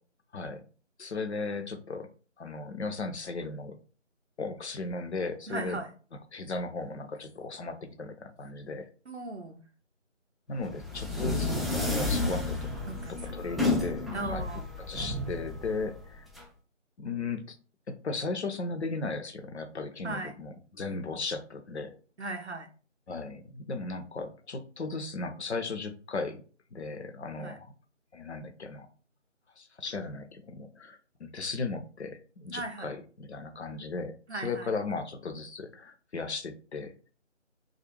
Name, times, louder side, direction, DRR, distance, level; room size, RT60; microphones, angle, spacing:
voice 1, 0.3-0.6 1.0-2.1 2.4-3.8 4.4-5.8 6.3-8.9 10.5-12.7 13.3-14.5 14.9-16.3 17.0-17.6 17.9-21.9 23.1-26.4 26.7-27.7 28.1-28.9 29.6-37.1, left 3 dB, 65° left, 7 dB, 0.5 m, -36 dB
voice 2, 5.5-5.9 9.1-9.6 12.8-13.3 14.1-14.7 20.0-20.3 22.2-22.7 27.4-27.6 32.5-32.9 34.3-34.7, right 2 dB, 60° right, 5 dB, 0.5 m, -37 dB
sound 1, 10.6-16.4, left 2 dB, ahead, 0.3 m, -31 dB
2.3 x 2.0 x 3.0 m, 0.38 s
figure-of-eight pair, 170°, 37 cm